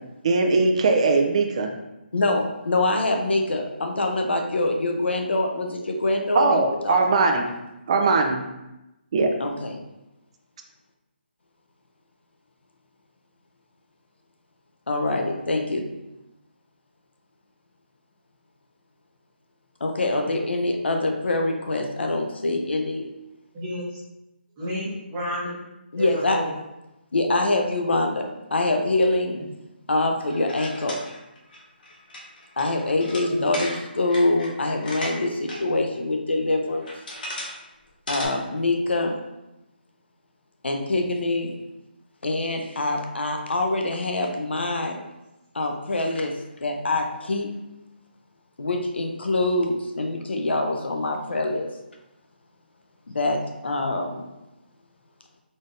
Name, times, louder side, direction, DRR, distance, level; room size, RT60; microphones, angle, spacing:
voice 1, 0.2-1.7 6.3-7.4 7.9-8.4 9.1-9.3, right 3 dB, 35° right, 3 dB, 0.4 m, -20 dB
voice 2, 2.1-7.4 9.4-9.8 14.9-15.8 19.8-23.1 25.9-26.4 27.1-28.2 28.5-29.4 29.9-31.0 32.6-36.9 38.1-39.2 40.6-41.5 42.2-45.0 45.5-46.3 46.6-47.5 48.6-51.7 53.1-54.2, left 2 dB, 85° left, 3 dB, 0.7 m, -24 dB
voice 3, 23.5-24.0 24.6-25.6 26.0-26.5 33.4-33.5, equal, 15° right, -9 dB, 1.2 m, -31 dB
sound 1, 30.3-35.6 35.9-36.0 36.7-37.6 37.9-38.3, left 1 dB, 55° left, 1.1 m, -36 dB
4.0 x 3.5 x 2.5 m, 0.95 s
hypercardioid pair, 165°, 6 cm